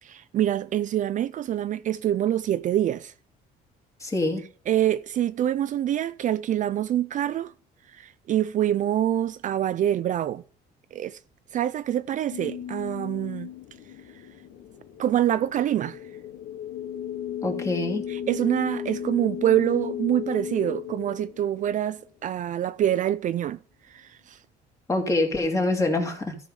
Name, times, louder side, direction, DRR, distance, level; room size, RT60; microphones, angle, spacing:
voice 1, 0.0-3.1 4.7-7.5 7.9-10.4 10.9-11.2 11.5-13.5 15.0-16.0 18.1-23.6 23.9-24.4, right 11 dB, 50° right, 0.4 m, -25 dB
voice 2, 4.0-4.4 17.4-18.1 24.9-26.4, left 2 dB, 20° left, 2.3 m, -25 dB
sound 1, 12.3-22.1, left 9 dB, 75° left, 1.0 m, -35 dB
14.0 x 5.0 x 5.3 m
cardioid pair, 110°, 17 cm